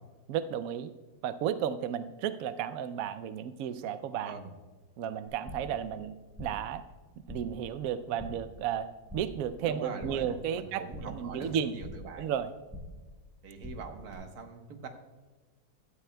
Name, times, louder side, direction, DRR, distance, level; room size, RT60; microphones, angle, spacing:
voice 1, 0.3-0.9 1.2-4.4 5.0-6.9 7.3-11.8 12.2-12.5, right 9 dB, 75° right, 11 dB, 0.7 m, -33 dB
sound 1, 5.3-5.8 6.1-6.7 7.0-7.6 7.9-8.5 8.8-9.5 9.7-10.4 10.6-12.1 12.4-13.1 13.3-14.1, left 1 dB, 5° right, 4.3 m, -46 dB
voice 2, 9.6-12.3 13.4-14.9, right 4 dB, 60° right, 5 dB, 1.5 m, -42 dB
16.5 x 13.0 x 2.2 m, 1.3 s
omnidirectional pair, 2.0 m